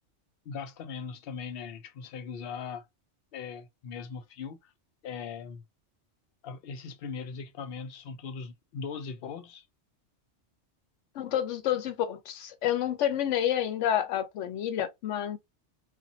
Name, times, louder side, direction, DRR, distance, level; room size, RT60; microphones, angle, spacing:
voice 1, 0.5-2.9 3.3-4.7 5.0-5.6 6.4-9.7, left 6 dB, 60° left, 0.7 m, -39 dB
voice 2, 11.1-15.4, left 10 dB, 85° left, 1.0 m, -29 dB
2.6 x 2.3 x 2.6 m
omnidirectional pair, 1.2 m